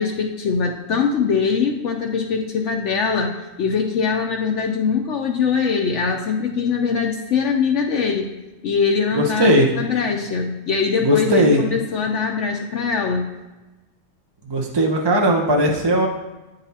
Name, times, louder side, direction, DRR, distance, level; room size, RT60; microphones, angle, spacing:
voice 1, 0.0-8.3 8.6-13.3, left 5 dB, 70° left, 2 dB, 0.9 m, -22 dB
voice 2, 9.1-9.7 11.0-11.6 14.5-16.1, equal, 30° right, 1 dB, 0.5 m, -17 dB
9.0 x 4.0 x 4.1 m, 1.1 s
omnidirectional pair, 1.3 m